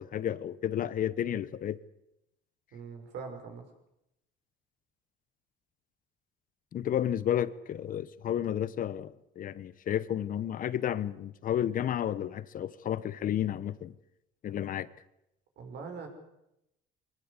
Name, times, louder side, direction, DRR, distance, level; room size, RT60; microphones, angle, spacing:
voice 1, 0.0-1.8 6.7-13.9 14.4-14.9, left 10 dB, 45° left, 1.0 m, -32 dB
voice 2, 2.7-3.6 15.6-16.1, right 5 dB, 65° right, 6.4 m, -42 dB
23.0 x 19.0 x 8.4 m
cardioid pair, 110°, 19 cm